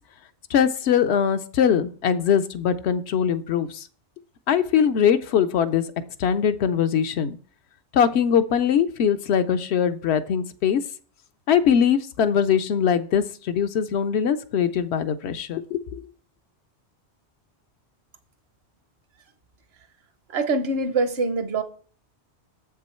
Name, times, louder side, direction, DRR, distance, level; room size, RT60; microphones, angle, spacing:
voice 1, 0.5-3.9 4.5-5.8 6.2-7.4 7.9-10.8 11.5-16.0, left 8 dB, 75° left, 0.8 m, -22 dB
voice 2, 20.3-21.6, right 3 dB, 65° right, 1.2 m, -24 dB
7.6 x 6.0 x 4.3 m
omnidirectional pair, 1.1 m